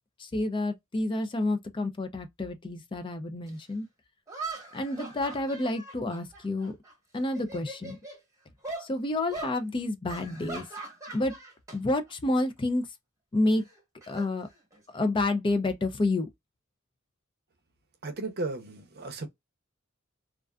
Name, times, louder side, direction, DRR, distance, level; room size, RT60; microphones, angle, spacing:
voice 1, 0.2-3.9 4.7-6.7 7.1-8.0 8.8-10.7 11.1-11.3 11.7-12.9 13.3-13.6 14.1-14.5 14.9-16.3, left 2 dB, 25° left, 0.4 m, -29 dB
sound 1, 3.5-3.6 4.3-6.9 7.2-8.2 8.6-8.9 9.3-9.5 10.1-11.8 12.1-12.4 13.5-15.0, right 2 dB, 15° right, 1.0 m, -41 dB
voice 2, 18.0-19.3, right 2 dB, 50° right, 0.6 m, -35 dB
2.4 x 2.3 x 2.2 m
head